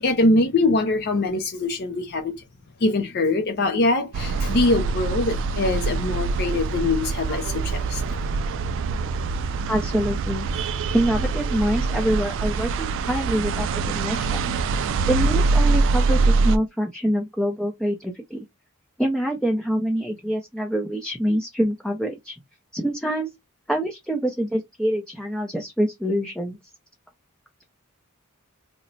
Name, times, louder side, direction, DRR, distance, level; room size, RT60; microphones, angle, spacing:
voice 1, 0.0-2.3 2.8-8.0, left 2 dB, 50° left, 0.5 m, -23 dB
sound 1, 4.1-16.6, right 3 dB, 60° right, 0.3 m, -24 dB
voice 2, 9.7-10.5 10.9-14.4 15.0-18.4 19.0-22.4 22.7-23.3 23.7-26.6, equal, 5° left, 0.5 m, -25 dB
2.9 x 2.1 x 3.9 m
head